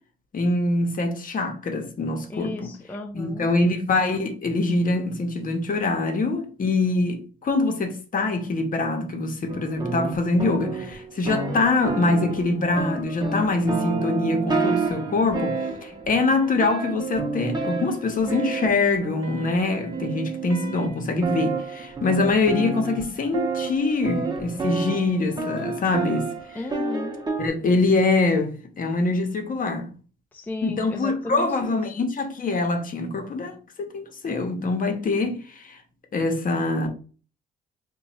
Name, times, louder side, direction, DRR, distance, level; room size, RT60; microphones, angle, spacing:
voice 1, 0.3-2.7 3.1-15.6 15.8-26.3 27.4-29.9 30.6-35.8 36.1-36.9, left 3 dB, 45° left, 0.9 m, -24 dB
voice 2, 2.3-3.5 26.5-27.2 30.3-31.8, left 2 dB, 10° left, 0.4 m, -34 dB
sound 1, 9.5-27.5, right 3 dB, 20° right, 0.9 m, -30 dB
2.9 x 2.3 x 4.2 m
cardioid pair, 90°, 20 cm